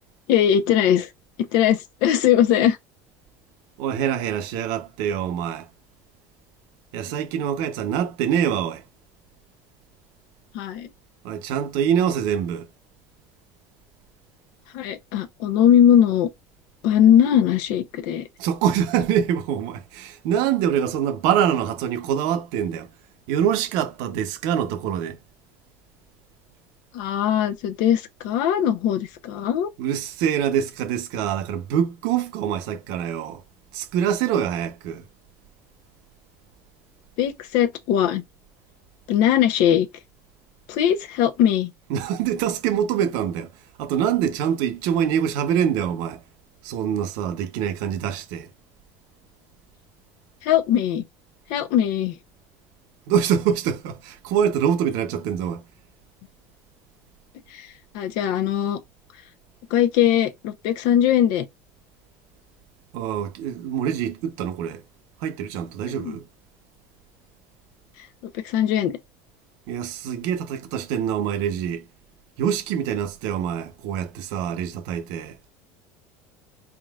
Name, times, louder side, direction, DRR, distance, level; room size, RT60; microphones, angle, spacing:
voice 1, 0.3-1.1 1.5-2.8 10.5-10.9 14.7-16.3 16.8-18.3 26.9-29.7 37.2-38.2 39.1-39.9 40.7-41.7 50.4-51.0 51.5-52.2 57.5-57.7 57.9-58.8 59.7-61.4 65.9-66.1 68.3-69.0, left 10 dB, 70° left, 0.7 m, -20 dB
voice 2, 3.8-5.7 6.9-8.8 11.2-12.7 18.4-22.9 23.3-25.2 29.8-33.4 33.7-35.0 41.9-43.5 43.8-46.2 46.6-48.5 53.1-55.6 62.9-64.8 65.2-66.3 69.7-71.8 72.4-75.4, right 9 dB, 70° right, 0.8 m, -25 dB
4.2 x 3.7 x 2.4 m
supercardioid pair, 110°, 7 cm